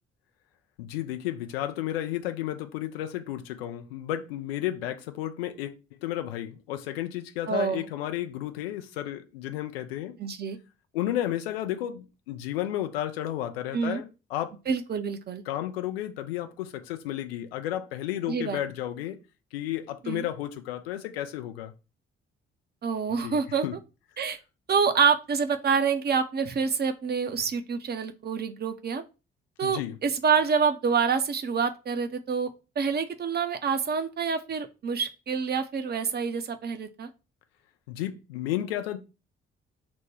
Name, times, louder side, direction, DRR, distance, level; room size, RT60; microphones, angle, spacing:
voice 1, 0.8-5.7 6.0-10.1 10.9-14.6 15.5-19.2 19.5-21.7 23.2-23.4 23.6-23.7 29.6-29.9 37.9-39.0, left 12 dB, 75° left, 0.5 m, -32 dB
voice 2, 7.5-7.9 10.2-10.6 13.7-14.0 14.7-15.4 18.3-18.6 20.0-20.2 22.8-23.6 24.2-24.4 24.7-29.0 29.6-32.5 32.8-37.1, right 6 dB, 35° right, 0.6 m, -27 dB
6.0 x 2.1 x 3.1 m
figure-of-eight pair, 40°, 30 cm